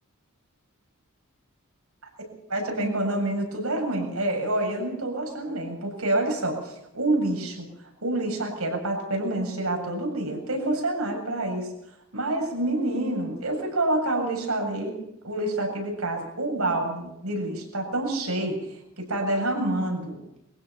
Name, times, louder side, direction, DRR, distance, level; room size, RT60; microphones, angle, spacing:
voice 1, 2.5-7.7 8.0-11.7 12.1-15.0 15.2-20.2, right 1 dB, 85° right, 1 dB, 7.7 m, -27 dB
24.5 x 16.0 x 7.3 m, 0.81 s
head